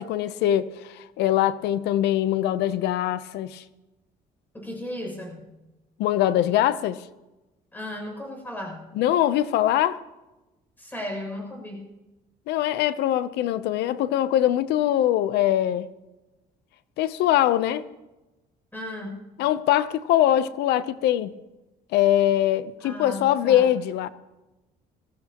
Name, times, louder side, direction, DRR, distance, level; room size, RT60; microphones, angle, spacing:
voice 1, 0.0-3.6 6.0-7.1 8.9-10.0 12.5-15.9 17.0-17.8 19.4-21.4 21.9-24.1, left 12 dB, 85° left, 0.7 m, -22 dB
voice 2, 4.5-5.4 7.7-8.9 10.8-11.8 18.7-19.2 22.8-23.7, left 1 dB, 10° left, 6.8 m, -35 dB
21.5 x 15.5 x 3.0 m
cardioid pair, 110°, 17 cm